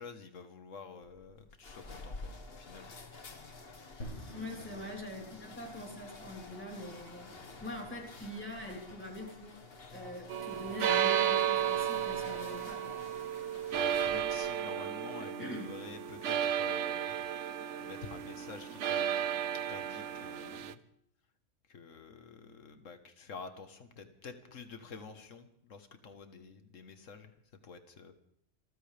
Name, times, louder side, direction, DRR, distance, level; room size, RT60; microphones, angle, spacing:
voice 1, 0.0-2.9 4.5-4.9 13.7-17.2 17.8-19.2 19.5-20.8 21.7-27.3 27.6-28.1, left 5 dB, 85° left, 8 dB, 1.7 m, -49 dB
sound 1, 1.0-14.5, left 3 dB, 50° left, 1.7 m, -50 dB
sound 2, 4.0-14.3, equal, 65° left, 4.9 m, -54 dB
voice 2, 4.3-7.3 7.6-9.6 9.9-13.0 15.2-15.7, equal, 10° left, -1 dB, 3.9 m, -44 dB
sound 3, 10.3-20.7, right 9 dB, 75° right, 1.1 m, -33 dB
27.0 x 14.5 x 3.4 m, 0.72 s
omnidirectional pair, 1.3 m